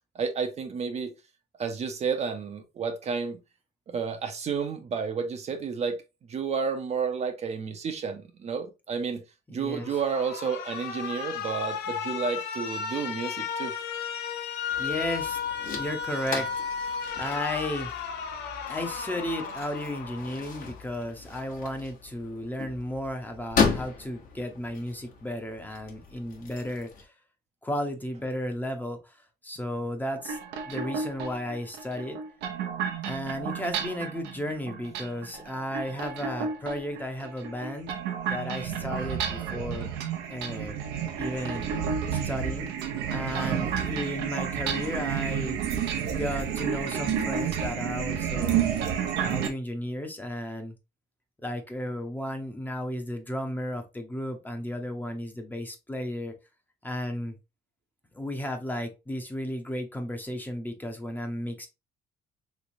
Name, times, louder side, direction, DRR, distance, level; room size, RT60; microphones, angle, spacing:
voice 1, 0.1-1.1 1.6-3.4 3.9-6.0 6.3-9.2 9.5-13.7, right 5 dB, 40° right, 0.6 m, -31 dB
voice 2, 9.5-9.9 14.8-15.4 15.7-16.5 17.2-17.9 18.7-27.1 27.6-29.2 29.4-30.4 30.7-32.2 33.0-38.0 38.2-39.9 40.3-40.8 41.2-41.7 42.1-42.7 43.1-45.6 46.1-48.6 49.2-50.8 51.4-56.3 56.8-57.4 58.1-61.7, left 1 dB, 10° left, 0.7 m, -34 dB
Alarm, 9.8-20.8, left 6 dB, 80° left, 0.6 m, -34 dB
sound 1, 14.7-27.0, left 5 dB, 55° left, 1.0 m, -35 dB
sound 2, 30.2-49.5, right 8 dB, 90° right, 0.7 m, -31 dB
3.3 x 3.1 x 2.6 m
cardioid pair, 110°, 17 cm